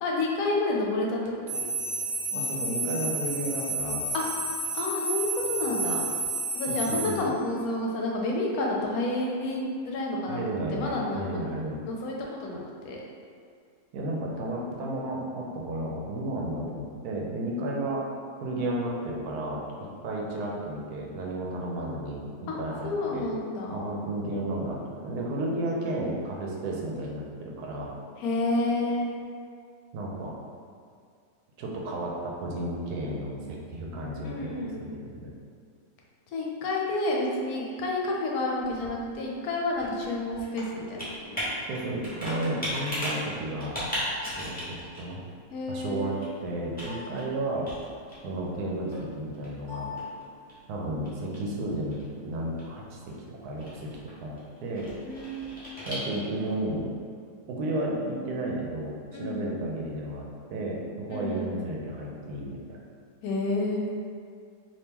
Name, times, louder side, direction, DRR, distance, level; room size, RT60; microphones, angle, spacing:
voice 1, 0.0-1.6 4.1-4.3 4.7-6.1 6.5-11.4 11.9-13.0 22.5-24.0 28.2-29.1 34.2-34.9 36.3-41.5 45.5-46.2 55.0-55.5 59.1-59.5 61.1-61.5 63.2-63.9, left 2 dB, 75° left, -2 dB, 1.0 m, -30 dB
sound 1, 1.5-7.2, right 3 dB, 65° right, 1.0 m, -31 dB
voice 2, 2.3-4.1 6.7-7.2 10.2-11.8 13.9-18.1 18.4-23.3 23.7-27.9 29.9-30.3 31.6-35.3 41.7-43.8 44.2-45.2 45.7-46.1 46.4-47.7 48.2-49.9 50.7-54.9 55.8-56.9 57.5-62.8, right 1 dB, 85° right, -2 dB, 1.1 m, -33 dB
Computer keyboard, 38.2-56.5, equal, 10° left, 0.6 m, -39 dB
2.9 x 2.8 x 3.5 m, 2.3 s
omnidirectional pair, 1.6 m